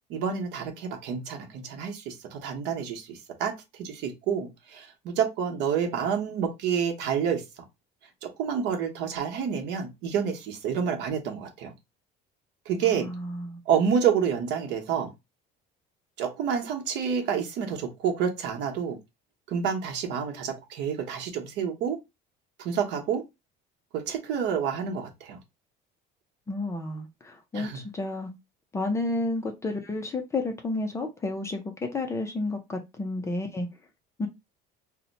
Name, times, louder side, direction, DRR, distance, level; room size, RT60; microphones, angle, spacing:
voice 1, 0.1-7.4 8.2-11.7 12.7-13.1 13.7-15.1 16.2-19.0 19.5-22.0 22.6-23.2 23.9-25.4 27.5-27.8, right 7 dB, 65° right, 0.9 m, -28 dB
voice 2, 12.8-13.6 26.5-28.3 28.7-33.7 34.2-34.3, left 2 dB, 15° left, 0.4 m, -31 dB
2.7 x 2.1 x 3.9 m
cardioid pair, 170°, 20 cm